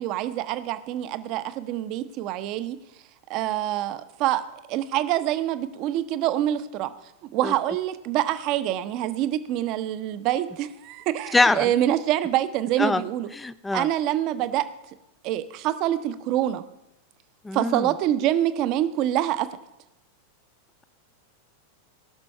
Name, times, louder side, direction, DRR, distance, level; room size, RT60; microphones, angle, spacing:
voice 1, 0.0-2.8 3.3-6.9 7.3-13.3 13.7-14.6 15.2-16.6 17.5-19.5, right 12 dB, 40° right, 12 dB, 0.7 m, -26 dB
voice 2, 11.3-11.7 12.8-13.0 13.3-13.9 17.4-17.9, left 3 dB, 10° left, 14 dB, 0.4 m, -23 dB
18.0 x 6.1 x 5.6 m, 0.91 s
figure-of-eight pair, 90°, 0 cm